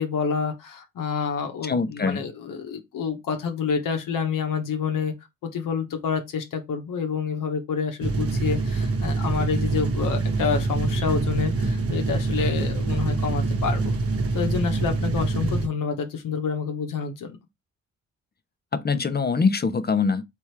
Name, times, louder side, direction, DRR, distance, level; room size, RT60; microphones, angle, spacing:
voice 1, 0.0-5.1 5.4-13.9 14.3-17.4, left 6 dB, 70° left, 1.0 m, -28 dB
voice 2, 1.6-2.2 18.7-20.2, left 5 dB, 30° left, 0.8 m, -23 dB
sound 1, 8.0-15.7, right 3 dB, 45° right, 1.3 m, -25 dB
3.5 x 3.1 x 4.6 m
hypercardioid pair, 45°, 34 cm